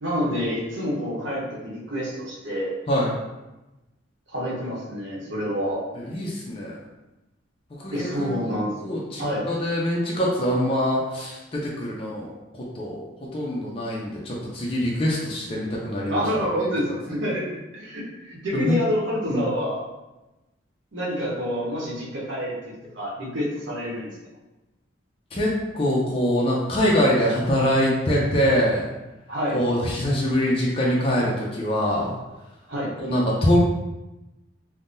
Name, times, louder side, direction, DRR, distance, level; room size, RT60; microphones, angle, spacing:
voice 1, 0.0-2.7 4.3-5.8 7.9-9.5 16.1-19.8 20.9-24.1 29.3-29.6 32.7-32.9, equal, 75° right, -5 dB, 0.9 m, -28 dB
voice 2, 2.9-3.2 6.0-6.8 7.7-12.3 12.7-16.2 16.6-16.7 18.5-18.8 19.3-19.5 25.3-28.9 29.5-32.2 33.0-33.6, equal, 30° left, -4 dB, 0.4 m, -24 dB
3.5 x 2.1 x 2.6 m, 1.0 s
head